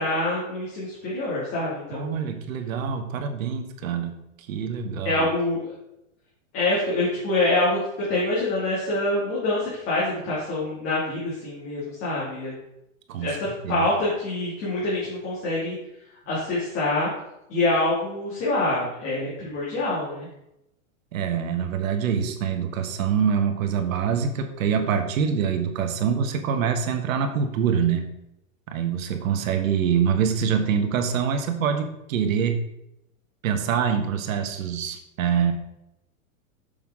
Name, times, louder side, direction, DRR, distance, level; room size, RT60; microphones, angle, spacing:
voice 1, 0.0-2.2 5.0-5.7 6.5-12.5 13.2-15.7 16.3-17.1 17.5-20.3, left 2 dB, 30° left, -7 dB, 2.7 m, -25 dB
voice 2, 1.9-4.2 4.5-5.3 13.1-13.4 13.6-13.8 21.1-28.1 28.7-32.6 33.4-35.5, right 7 dB, 70° right, 6 dB, 1.4 m, -25 dB
7.2 x 5.6 x 4.9 m, 0.84 s
supercardioid pair, 160°, 41 cm